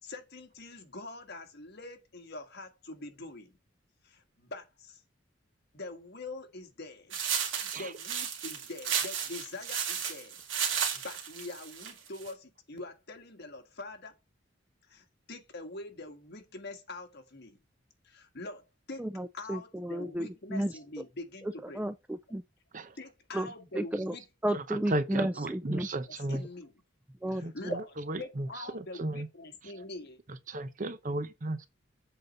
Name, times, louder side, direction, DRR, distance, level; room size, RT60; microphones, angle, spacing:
voice 1, 0.0-3.6 4.0-5.0 5.7-7.2 7.5-14.2 14.8-17.6 18.0-19.1 19.3-21.8 23.0-24.2 25.1-25.2 26.1-26.7 27.3-27.8 28.2-30.2, left 2 dB, 60° left, 1.7 m, -44 dB
sound 1, 7.1-12.3, right 7 dB, 80° right, 2.2 m, -33 dB
voice 2, 19.0-20.8 21.4-22.4 23.3-24.2 24.4-25.9 27.2-27.5, right 1 dB, 5° right, 0.3 m, -33 dB
voice 3, 24.9-26.4 27.4-27.5 28.1-28.5 29.0-29.3 30.5-31.7, right 2 dB, 45° right, 0.8 m, -34 dB
7.8 x 4.1 x 5.2 m
head